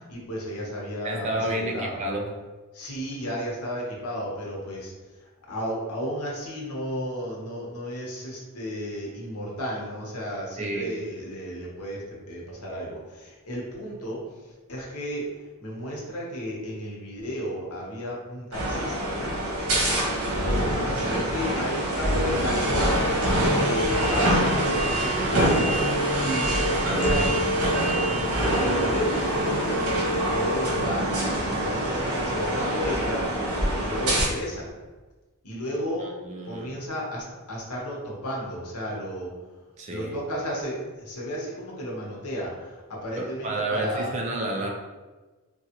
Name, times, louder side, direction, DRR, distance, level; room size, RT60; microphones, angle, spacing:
voice 1, 0.1-2.0 2.7-4.9 5.2-15.3 15.6-19.2 20.7-22.8 23.5-24.6 24.9-25.8 26.1-27.4 28.1-30.0 30.3-31.1 31.5-33.3 33.8-34.7 35.4-36.1 36.4-39.3 39.9-44.1, equal, 85° left, -3 dB, 0.9 m, -33 dB
voice 2, 1.0-2.3 10.6-11.0 36.0-36.8 39.8-40.1 43.2-44.7, right 1 dB, 30° right, 1 dB, 0.4 m, -30 dB
sound 1, 18.5-34.2, right 1 dB, 80° right, 1.0 m, -24 dB
3.4 x 2.3 x 2.8 m, 1.2 s
head